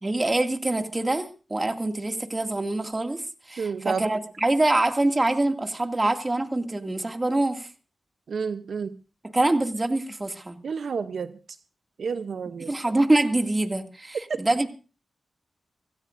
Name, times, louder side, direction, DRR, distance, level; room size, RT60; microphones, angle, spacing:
voice 1, 0.0-3.2 3.5-7.7 9.3-10.6 12.6-14.7, right 2 dB, 25° right, 5 dB, 2.3 m, -25 dB
voice 2, 3.6-4.1 8.3-8.9 10.6-11.3 12.0-12.7 14.3-14.4, right 5 dB, 75° right, 11 dB, 0.7 m, -30 dB
25.0 x 16.5 x 2.6 m, 0.35 s
cardioid pair, 55°, 0 cm